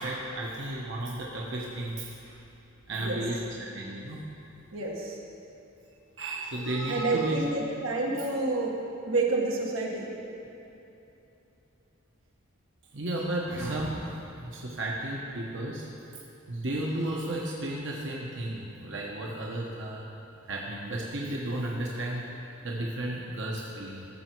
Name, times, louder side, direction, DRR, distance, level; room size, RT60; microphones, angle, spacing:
voice 1, 0.0-2.4 2.9-4.2 6.2-7.4 12.9-15.9 16.5-20.1 20.5-22.2 22.6-24.1, right 1 dB, 60° right, -3 dB, 1.1 m, -33 dB
voice 2, 4.7-5.2 6.9-8.8 9.0-10.1, right 3 dB, 90° right, -2 dB, 1.7 m, -29 dB
16.0 x 6.9 x 4.6 m, 2.8 s
head